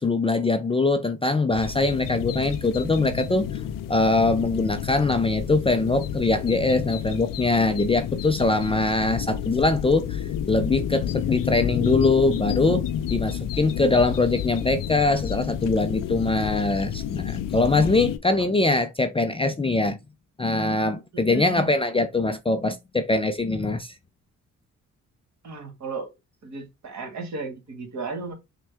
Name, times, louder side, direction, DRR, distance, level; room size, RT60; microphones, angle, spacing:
voice 1, 0.0-3.6 3.9-12.8 13.1-20.0 20.4-23.9, left 3 dB, 15° left, 0.4 m, -22 dB
sound 1, 1.5-18.2, left 9 dB, 85° left, 0.5 m, -30 dB
voice 2, 21.1-21.7 25.4-26.1 26.4-28.3, right 4 dB, 60° right, 1.9 m, -34 dB
6.1 x 2.3 x 3.4 m
cardioid pair, 95°, 32 cm